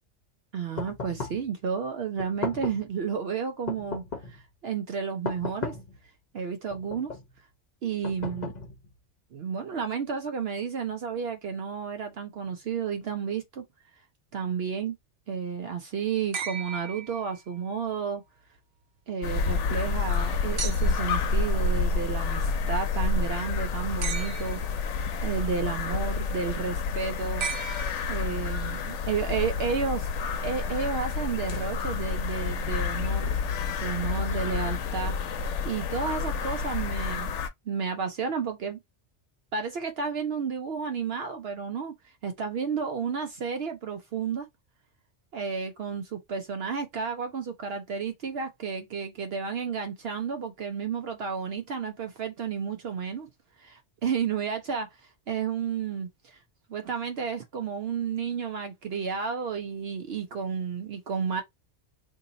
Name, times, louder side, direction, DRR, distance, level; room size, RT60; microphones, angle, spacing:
voice 1, 0.5-4.0 4.3-5.8 6.3-7.1 7.8-8.5 9.3-13.6 14.3-15.0 15.3-18.2 19.1-27.5 28.1-30.1 30.4-33.4 33.8-35.1 35.6-37.4 37.7-38.8 39.5-41.9 42.2-44.5 45.3-53.3 53.6-54.9 55.3-56.4 56.7-61.4, right 6 dB, 65° right, 0.8 m, -32 dB
sound 1, 0.8-1.5 2.2-2.9 3.7-4.4 5.2-6.0 6.7-7.3 8.0-8.9, left 4 dB, 40° left, 0.8 m, -36 dB
sound 2, 16.3-17.7 20.6-21.2 24.0-24.8 27.4-28.4 30.0-30.1, right 6 dB, 85° right, 1.1 m, -36 dB
sound 3, 19.2-37.5, left 4 dB, 85° left, 0.9 m, -29 dB
2.7 x 2.7 x 3.8 m
omnidirectional pair, 1.2 m